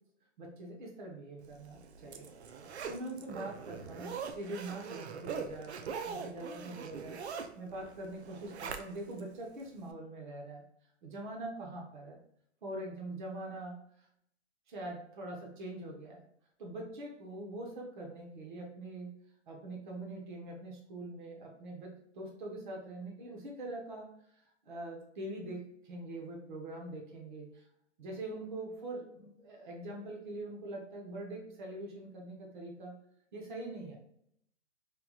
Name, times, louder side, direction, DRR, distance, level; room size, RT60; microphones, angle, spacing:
voice 1, 0.4-2.3 2.6-5.8 6.0-10.6 11.0-12.2 12.6-13.8 14.7-16.2 16.6-19.1 19.5-24.1 24.4-27.6 28.0-32.9 33.3-34.0, right 1 dB, 40° right, 0 dB, 0.9 m, -43 dB
Zipper (clothing), 1.6-9.2 9.6-9.7, right 6 dB, 60° right, 0.5 m, -42 dB
3.5 x 3.0 x 2.3 m, 0.70 s
hypercardioid pair, 170°, 37 cm